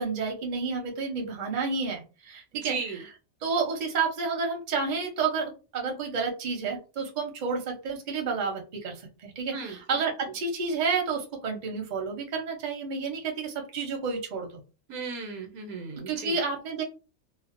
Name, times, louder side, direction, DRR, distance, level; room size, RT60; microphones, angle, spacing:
voice 1, 0.0-3.0 3.4-14.6 16.1-16.8, right 4 dB, 45° right, 2 dB, 0.6 m, -30 dB
voice 2, 2.5-3.0 9.5-9.8 14.9-16.4, right 5 dB, 80° right, 4 dB, 1.0 m, -36 dB
2.5 x 2.0 x 2.4 m, 0.32 s
omnidirectional pair, 1.5 m